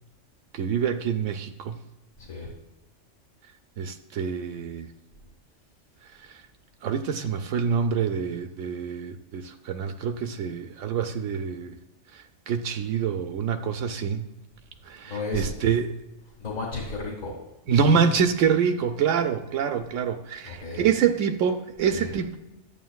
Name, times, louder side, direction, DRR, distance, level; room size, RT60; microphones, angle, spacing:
voice 1, 0.5-1.8 3.8-4.9 6.8-11.7 12.1-14.2 14.9-15.9 17.7-22.4, right 7 dB, 80° right, 7 dB, 0.9 m, -26 dB
voice 2, 2.2-2.5 15.0-15.5 16.4-17.4 20.5-20.9 21.9-22.1, left 3 dB, 75° left, -3 dB, 2.1 m, -33 dB
11.0 x 8.6 x 2.3 m, 0.97 s
omnidirectional pair, 1.3 m